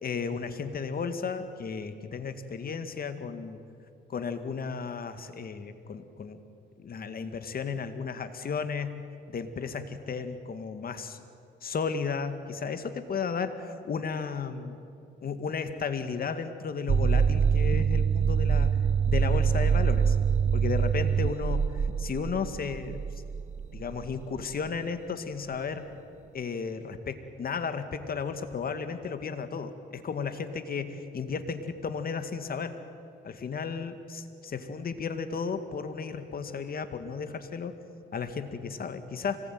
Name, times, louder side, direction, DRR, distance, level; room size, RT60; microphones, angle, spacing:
voice 1, 0.0-3.6 4.1-6.4 6.8-11.2 11.6-14.8 15.2-20.2 20.5-23.0 23.7-25.9 26.3-32.8 33.2-37.7 38.1-39.4, left 5 dB, 50° left, 9 dB, 2.1 m, -34 dB
sound 1, 16.9-24.5, right 7 dB, 35° right, 0.6 m, -25 dB
25.0 x 19.5 x 9.4 m, 2.5 s
cardioid pair, 90°, 20 cm